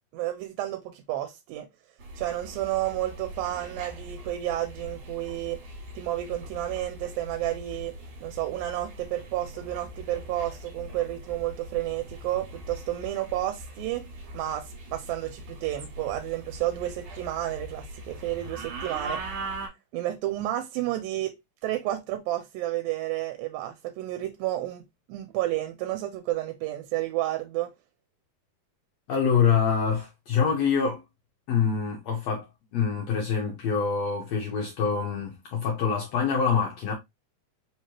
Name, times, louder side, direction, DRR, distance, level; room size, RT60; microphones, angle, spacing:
voice 1, 0.1-1.7 2.2-5.6 5.9-14.1 14.3-19.3 19.9-24.8 25.1-27.7, right 14 dB, 85° right, 2.4 m, -31 dB
sound 1, 2.0-19.7, right 1 dB, 65° right, 2.6 m, -41 dB
voice 2, 29.1-31.0 31.5-32.5 32.7-36.9, left 6 dB, 70° left, 1.6 m, -25 dB
5.2 x 3.0 x 2.9 m
omnidirectional pair, 4.1 m